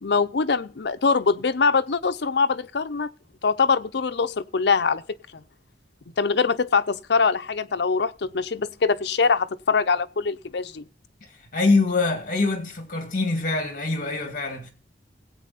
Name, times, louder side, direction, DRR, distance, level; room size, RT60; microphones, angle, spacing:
voice 1, 0.0-3.1 3.4-5.4 6.2-10.8, left 4 dB, 70° left, 0.6 m, -23 dB
voice 2, 11.5-14.7, left 3 dB, 45° left, 2.2 m, -24 dB
17.0 x 8.4 x 4.1 m
head